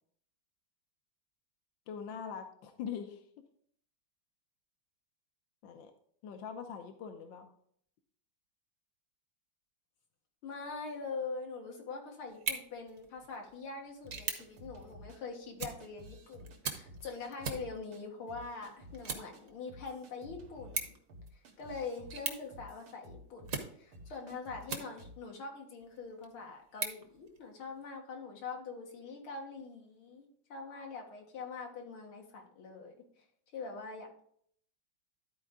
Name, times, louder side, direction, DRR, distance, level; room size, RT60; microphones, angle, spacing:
voice 1, 1.9-3.2 5.6-5.9 6.2-7.5, left 7 dB, 70° left, 6 dB, 1.5 m, -42 dB
voice 2, 10.4-20.9 21.3-23.4 23.7-32.9 33.5-34.2, left 4 dB, 90° left, 1 dB, 2.4 m, -43 dB
sound 1, 12.3-25.3 25.8-27.9, right 5 dB, 50° right, 1.2 m, -44 dB
sound 2, 14.0-15.2 15.8-16.6 16.9-18.0 18.3-19.0 19.3-19.4 19.7-23.6 23.9-24.7 25.0-25.2, equal, 85° right, 2.2 m, -53 dB
12.0 x 4.5 x 3.7 m, 0.63 s
omnidirectional pair, 2.3 m